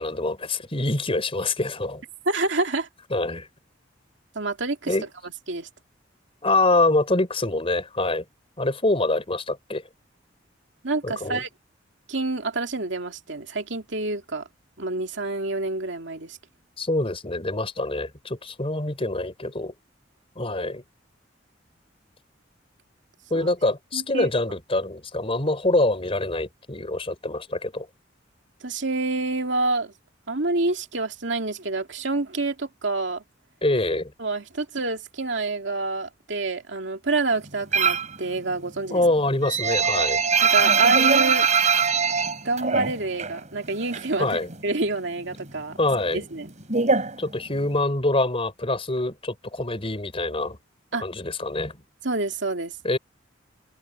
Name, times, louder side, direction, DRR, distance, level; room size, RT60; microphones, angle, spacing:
voice 1, 0.0-2.0 3.1-3.5 4.9-5.1 6.4-8.2 8.6-9.8 11.0-11.4 16.8-19.7 20.4-20.8 23.3-27.9 33.6-34.1 38.9-40.2 44.2-44.5 45.8-46.2 47.2-50.6 50.9-51.7 52.8-53.0, left 2 dB, 30° left, 4.3 m, -25 dB
voice 2, 2.3-2.9 4.3-4.9 5.2-5.7 10.8-11.5 12.1-14.4 14.8-16.4 23.3-23.5 23.9-24.3 28.6-29.9 30.3-33.2 34.2-39.0 40.4-41.5 42.4-45.8 46.1-46.5 50.9-51.1 52.0-52.7, right 3 dB, 70° right, 2.6 m, -27 dB
sound 1, 37.7-38.2 38.5-43.4 43.6-44.7 45.0-47.8, right 6 dB, 40° right, 6.0 m, -22 dB
head